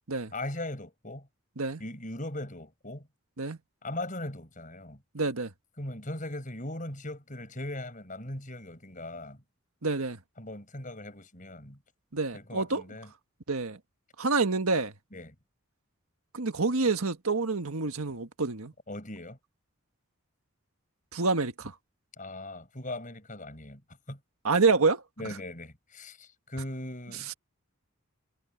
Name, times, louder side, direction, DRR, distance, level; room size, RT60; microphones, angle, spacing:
voice 1, 0.3-1.3 1.8-3.1 3.8-5.0 5.8-9.4 10.4-11.8 12.3-13.1 15.1-15.3 18.9-19.4 22.2-23.8 24.1-24.2 25.2-27.4, left 1 dB, 35° left, 6.7 m, -39 dB
voice 2, 5.1-5.5 9.8-10.2 12.1-12.8 13.5-13.8 14.2-14.9 16.3-18.7 21.1-21.7 24.4-25.0 27.3-27.4, right 3 dB, 85° right, 1.6 m, -27 dB
head